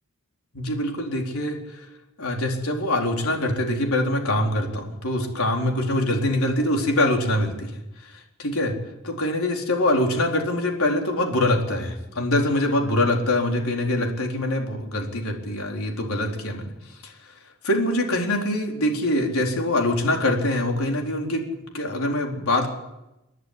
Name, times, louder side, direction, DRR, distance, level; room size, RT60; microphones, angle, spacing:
voice 1, 0.5-1.8 2.2-7.7 8.0-8.7 9.0-16.7 17.0-17.1 17.6-21.4 21.7-22.7, left 1 dB, 85° left, 1 dB, 4.3 m, -24 dB
30.0 x 11.0 x 9.8 m, 0.95 s
head